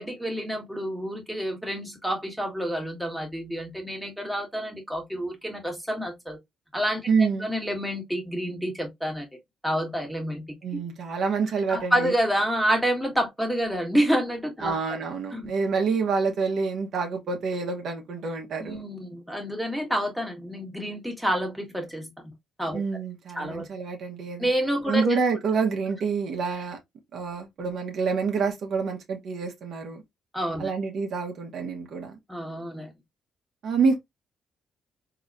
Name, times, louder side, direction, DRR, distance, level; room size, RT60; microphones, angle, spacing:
voice 1, 0.0-6.4 6.7-9.3 9.6-10.4 10.7-10.8 11.7-15.0 15.3-15.5 18.6-22.1 22.6-22.8 23.3-23.7 24.4-25.2 30.3-30.7 32.3-32.9, equal, ahead, 1.6 m, -28 dB
voice 2, 7.1-7.5 10.6-12.1 14.6-18.8 22.7-24.5 24.9-26.8 27.1-30.0 30.6-32.2 33.6-34.0, right 5 dB, 65° right, 1.2 m, -27 dB
4.0 x 3.0 x 2.5 m
cardioid pair, 90°, 0 cm